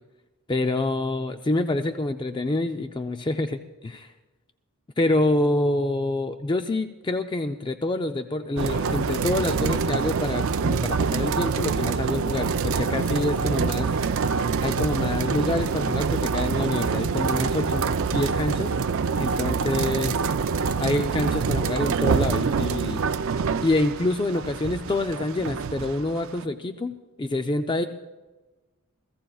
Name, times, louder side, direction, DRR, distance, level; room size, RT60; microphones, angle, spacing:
voice 1, 0.5-4.1 5.0-13.9 14.6-18.7 19.2-20.2 20.8-23.1 23.6-27.8, left 2 dB, 20° left, 7 dB, 0.4 m, -27 dB
sound 1, 8.6-26.4, right 5 dB, 65° right, 0.5 m, -25 dB
29.5 x 15.5 x 2.4 m, 1.2 s
head